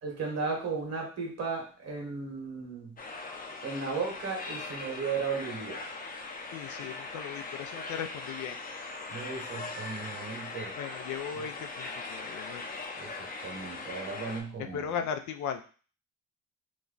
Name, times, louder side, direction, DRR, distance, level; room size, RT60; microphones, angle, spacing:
voice 1, 0.0-3.0 3.6-5.8 9.1-10.7 13.0-14.9, right 4 dB, 60° right, 0 dB, 1.4 m, -35 dB
sound 1, 3.0-14.4, left 3 dB, 30° left, 0.6 m, -40 dB
voice 2, 6.5-8.6 10.8-12.6 14.7-15.6, left 7 dB, 70° left, 7 dB, 0.5 m, -37 dB
3.0 x 2.2 x 3.8 m, 0.39 s
cardioid pair, 90°, 30 cm